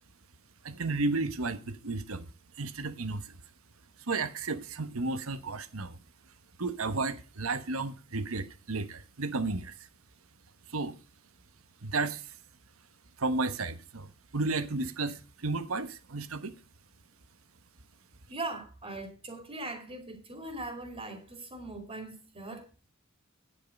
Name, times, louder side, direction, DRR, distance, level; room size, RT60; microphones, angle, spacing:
voice 1, 0.6-2.3 2.6-3.3 4.0-6.0 6.6-9.8 10.7-11.0 11.8-12.3 13.2-16.5, right 3 dB, 75° right, 1.1 m, -33 dB
voice 2, 18.3-22.7, right 2 dB, 30° right, 2.5 m, -40 dB
9.5 x 8.6 x 5.3 m
head